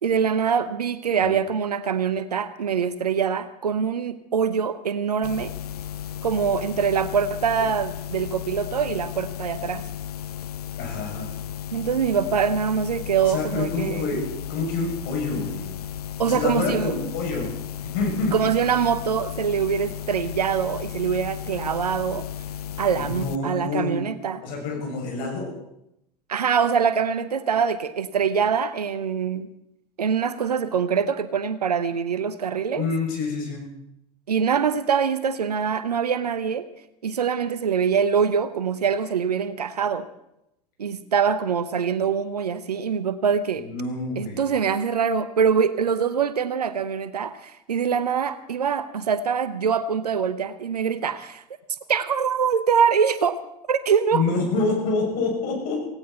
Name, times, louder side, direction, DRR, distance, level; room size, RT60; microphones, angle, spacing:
voice 1, 0.0-5.5 6.2-9.9 11.7-14.2 16.2-17.0 18.3-22.3 22.8-24.4 26.3-29.5 30.0-32.9 34.3-36.7 37.0-40.1 40.8-43.7 44.2-51.4 51.9-53.4 53.7-54.2, right 7 dB, 75° right, 14 dB, 0.9 m, -24 dB
sound 1, 5.2-23.4, left 10 dB, 70° left, 0.6 m, -35 dB
voice 2, 10.8-11.3 13.2-14.2 14.5-15.6 16.2-17.5 17.9-18.3 22.9-24.0 24.4-25.5 32.7-33.7 43.5-44.5 54.1-55.8, left 3 dB, 45° left, 0 dB, 6.5 m, -27 dB
18.0 x 17.0 x 4.2 m, 0.82 s
figure-of-eight pair, 80°, 20 cm